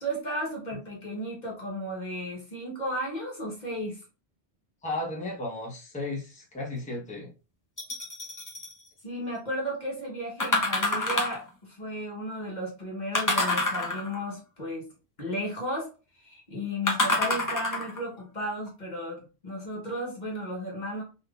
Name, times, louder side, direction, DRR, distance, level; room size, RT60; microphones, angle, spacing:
voice 1, 0.0-4.0 9.0-14.9 15.2-15.9 16.2-21.0, equal, 45° left, -2 dB, 1.1 m, -34 dB
voice 2, 4.8-7.3, left 2 dB, 10° left, -3 dB, 0.8 m, -34 dB
sound 1, 7.8-8.7 10.4-11.5 13.1-14.3 16.9-18.0 18.7-18.8, left 2 dB, 25° left, 0.5 m, -27 dB
3.5 x 2.7 x 2.3 m, 0.32 s
omnidirectional pair, 1.1 m